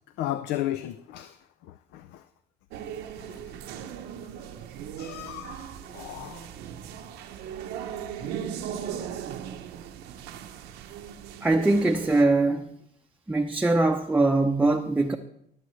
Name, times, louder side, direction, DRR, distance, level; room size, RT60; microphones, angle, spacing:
voice 1, 0.2-1.4 1.6-2.3 3.2-3.4 5.0-6.5, left 13 dB, 90° left, 11 dB, 0.5 m, -35 dB
sound 1, 2.7-12.2, right 9 dB, 85° right, 0.9 m, -38 dB
voice 2, 11.4-12.7 13.3-15.2, right 2 dB, 10° right, 2 dB, 0.6 m, -22 dB
22.0 x 7.6 x 3.2 m, 0.75 s
cardioid pair, 110°, 17 cm